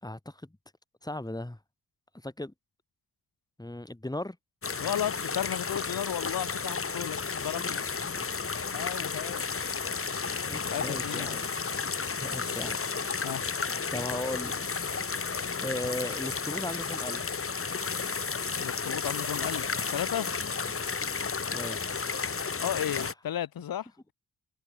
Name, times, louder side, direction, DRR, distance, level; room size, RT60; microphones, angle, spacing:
voice 1, 0.0-0.5 1.0-1.6 2.1-2.5 3.6-4.4 7.4-7.6 8.2-8.3 10.5-11.6 12.1-12.8 13.9-14.5 15.6-17.3 20.6-20.8 21.5-21.8 23.0-23.1, left 1 dB, 10° left, 4.2 m, -37 dB
sound 1, 4.6-23.1, left 5 dB, 40° left, 2.0 m, -32 dB
voice 2, 4.8-7.8 8.7-9.5 9.8-11.3 13.2-13.4 18.6-20.3 22.6-24.1, left 10 dB, 80° left, 3.5 m, -34 dB
supercardioid pair, 50°, 35 cm